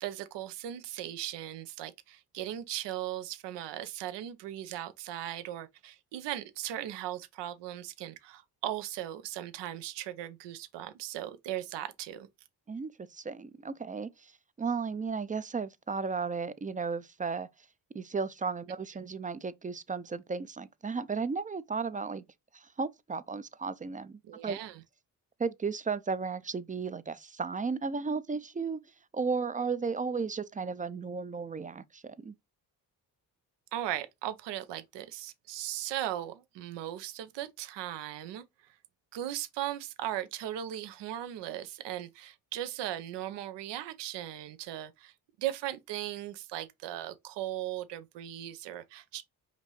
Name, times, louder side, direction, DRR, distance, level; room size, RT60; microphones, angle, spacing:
voice 1, 0.0-12.3 24.2-24.8 33.7-38.4 39.1-45.1 45.4-49.2, right 12 dB, 80° right, 0.6 m, -38 dB
voice 2, 12.7-14.3 14.6-17.5 17.9-22.2 22.5-24.6 25.4-28.8 29.1-32.3, right 5 dB, 20° right, 0.4 m, -34 dB
5.1 x 2.7 x 3.0 m
supercardioid pair, 50°, 42 cm